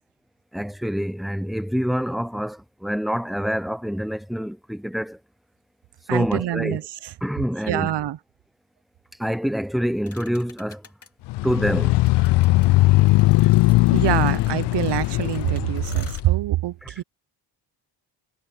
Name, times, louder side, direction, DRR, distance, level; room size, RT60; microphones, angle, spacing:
voice 1, 0.5-5.2 6.1-6.8 7.2-7.9 9.2-10.9 11.4-12.0 16.8-16.9, equal, ahead, 0.7 m, -26 dB
voice 2, 6.1-6.8 7.7-8.2 13.9-17.0, right 14 dB, 60° right, 0.9 m, -25 dB
sound 1, 10.1-11.1 12.1-16.2, left 4 dB, 30° left, 2.8 m, -48 dB
sound 2, 11.3-16.2, left 19 dB, 60° left, 0.5 m, -19 dB
supercardioid pair, 65°, 47 cm